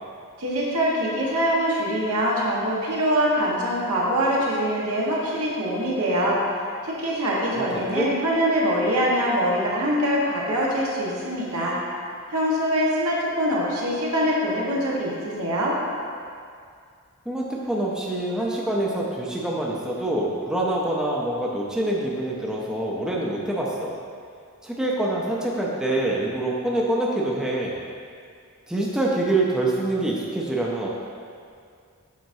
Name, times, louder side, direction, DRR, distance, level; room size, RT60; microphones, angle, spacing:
voice 1, 0.4-6.4 6.8-11.7 12.3-15.7, equal, 85° right, -5 dB, 1.4 m, -23 dB
voice 2, 17.3-23.9 24.6-27.8 28.7-30.9, right 1 dB, 5° right, -4 dB, 0.6 m, -25 dB
7.6 x 5.1 x 2.7 m, 2.3 s
head